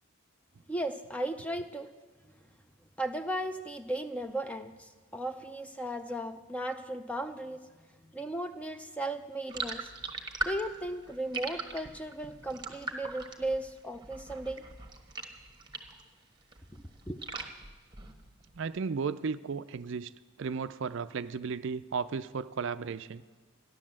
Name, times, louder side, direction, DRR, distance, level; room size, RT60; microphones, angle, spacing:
voice 1, 0.7-1.9 2.3-2.4 3.0-7.7 8.0-9.9 10.4-14.6 16.7-17.2, right 1 dB, 5° left, 8 dB, 0.6 m, -36 dB
sound 1, 9.5-16.1 16.4-18.5, right 3 dB, 20° right, 1.2 m, -40 dB
voice 2, 18.5-20.1 20.4-23.2, right 5 dB, 55° right, 13 dB, 0.4 m, -34 dB
14.5 x 11.0 x 7.5 m, 1.4 s
head